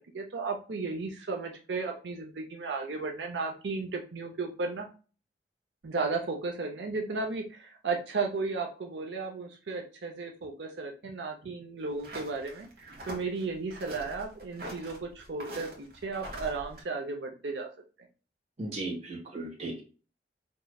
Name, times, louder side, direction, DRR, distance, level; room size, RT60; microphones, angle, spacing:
voice 1, 0.1-4.9 5.8-17.7, right 4 dB, 90° right, 2 dB, 0.6 m, -34 dB
sound 1, 11.9-16.8, right 1 dB, 60° right, 1.2 m, -44 dB
voice 2, 18.6-19.8, right 2 dB, 40° right, -1 dB, 1.2 m, -37 dB
4.5 x 3.0 x 2.3 m, 0.36 s
head